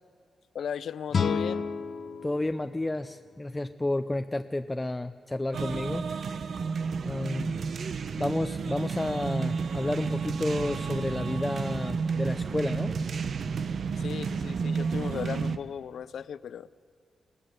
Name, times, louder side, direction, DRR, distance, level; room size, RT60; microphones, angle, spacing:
voice 1, 0.5-1.7 14.0-16.7, left 8 dB, 75° left, 16 dB, 0.5 m, -36 dB
sound 1, 1.1-4.1, left 5 dB, 55° left, 0.8 m, -32 dB
voice 2, 2.2-6.1 7.0-7.7 8.2-12.9, left 1 dB, 15° left, 8 dB, 0.5 m, -31 dB
sound 2, 5.5-15.6, right 5 dB, 65° right, 0.8 m, -31 dB
sound 3, 9.0-15.7, right 1 dB, 30° right, 1.8 m, -51 dB
22.0 x 18.0 x 6.8 m, 2.3 s
cardioid pair, 90°, 0 cm